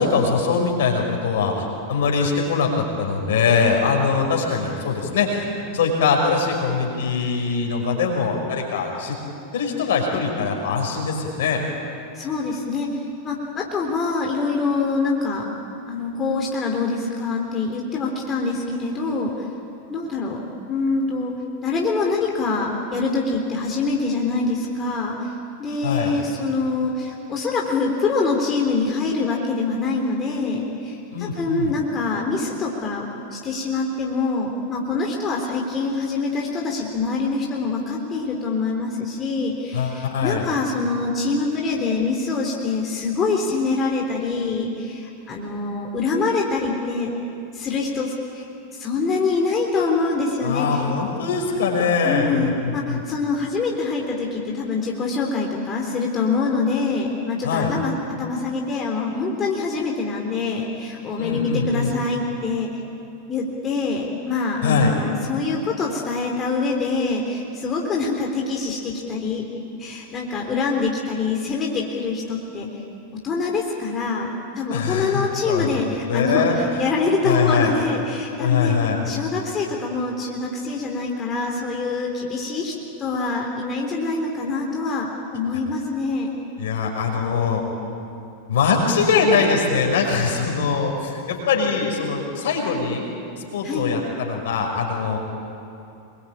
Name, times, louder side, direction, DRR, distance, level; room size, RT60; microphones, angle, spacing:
voice 1, 0.0-9.2 9.5-11.6 25.8-26.1 31.1-31.7 39.7-40.5 50.4-53.0 57.4-57.7 61.2-61.9 64.6-64.9 74.7-76.8 77.2-77.7 78.4-79.0 86.6-87.6 88.5-93.0 93.5-95.2, left 5 dB, 60° left, 1 dB, 5.8 m, -22 dB
voice 2, 12.2-13.0 13.2-15.5 15.9-19.5 19.9-20.4 20.7-21.4 21.6-25.3 25.6-47.1 47.5-48.5 48.7-50.9 52.0-62.7 63.3-69.4 69.8-72.8 73.2-74.3 74.6-78.8 79.1-82.7 83.0-86.3 93.6-94.0, left 4 dB, 25° left, 0 dB, 3.7 m, -25 dB
26.5 x 22.5 x 8.9 m, 2.7 s
figure-of-eight pair, 90°, 0 cm